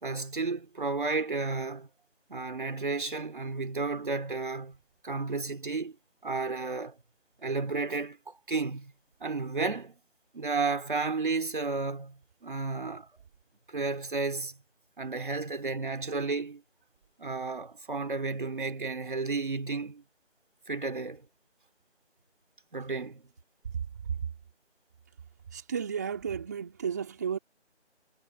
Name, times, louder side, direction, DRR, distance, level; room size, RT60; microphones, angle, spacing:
voice 1, 0.0-1.9 2.3-4.8 5.0-6.0 6.2-7.0 7.4-8.9 9.2-10.0 10.3-13.1 13.7-14.6 15.0-16.6 17.2-20.0 20.7-21.3 22.7-23.2, right 3 dB, 45° right, 3.1 m, -32 dB
voice 2, 25.5-27.4, right 7 dB, 15° right, 2.9 m, -33 dB
figure-of-eight pair, 175°, 35 cm